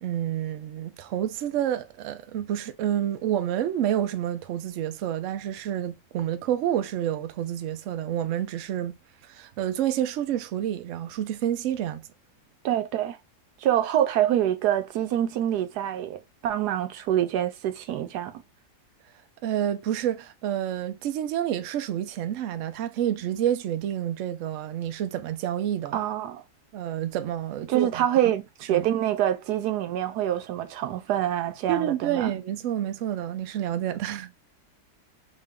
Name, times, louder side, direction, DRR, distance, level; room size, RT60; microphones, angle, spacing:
voice 1, 0.0-9.0 9.3-12.0 19.4-26.0 26.7-28.1 28.7-28.9 31.7-34.4, right 11 dB, 65° right, 0.8 m, -29 dB
voice 2, 12.6-13.2 13.6-18.4 25.9-26.4 27.7-32.3, right 11 dB, 90° right, 1.2 m, -26 dB
3.6 x 2.5 x 3.4 m
omnidirectional pair, 1.7 m